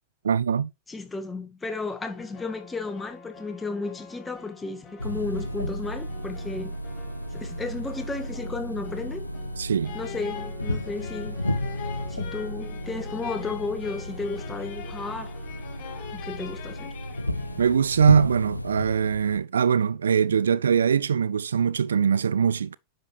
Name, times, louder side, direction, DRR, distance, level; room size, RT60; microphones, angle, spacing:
voice 1, 0.2-0.7 9.6-10.0 17.6-22.8, right 7 dB, 70° right, 0.4 m, -22 dB
voice 2, 0.9-6.8 7.3-9.2 9.9-11.4 12.1-15.3 16.1-16.9, left 3 dB, 10° left, 1.9 m, -33 dB
sound 1, 2.1-16.1, left 7 dB, 30° left, 2.7 m, -48 dB
sound 2, 5.0-19.4, left 1 dB, 85° left, 0.6 m, -33 dB
sound 3, 9.8-17.9, left 12 dB, 45° left, 1.7 m, -42 dB
10.0 x 6.6 x 3.3 m
figure-of-eight pair, 90°, 0 cm